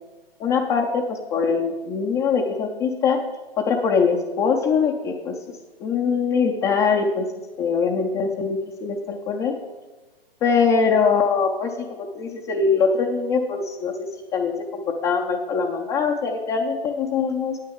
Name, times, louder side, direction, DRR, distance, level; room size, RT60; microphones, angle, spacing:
voice 1, 0.4-3.2 3.6-5.3 5.8-7.3 7.6-9.5 10.4-13.9 14.3-17.6, left 5 dB, 10° left, -1 dB, 0.3 m, -22 dB
9.7 x 8.8 x 7.0 m, 1.2 s
figure-of-eight pair, 120°, 30 cm